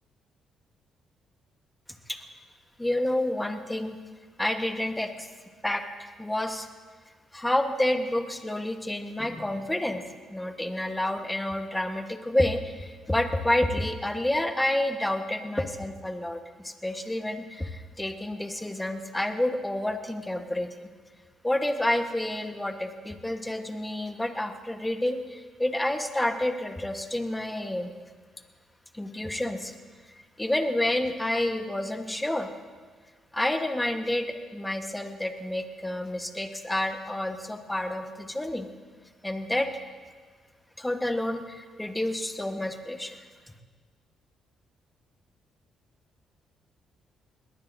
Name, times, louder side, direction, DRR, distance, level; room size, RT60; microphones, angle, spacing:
voice 1, 2.8-4.0 4.4-5.3 5.6-6.7 7.3-10.0 10.3-20.9 21.4-27.9 28.9-29.7 30.1-32.5 33.3-38.7 39.2-39.7 40.8-43.2, left 1 dB, 10° left, 6 dB, 1.2 m, -29 dB
21.0 x 19.0 x 2.6 m, 1.5 s
cardioid pair, 90°, 0 cm